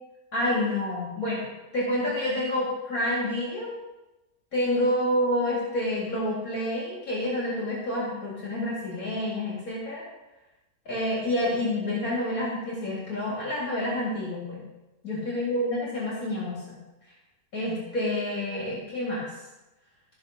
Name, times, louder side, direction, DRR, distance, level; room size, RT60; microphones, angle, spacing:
voice 1, 0.3-3.7 4.5-10.0 10.9-14.6 15.0-16.8 17.5-19.3, left 1 dB, 60° left, -6 dB, 4.1 m, -28 dB
15.0 x 6.9 x 5.6 m, 1.0 s
omnidirectional pair, 1.6 m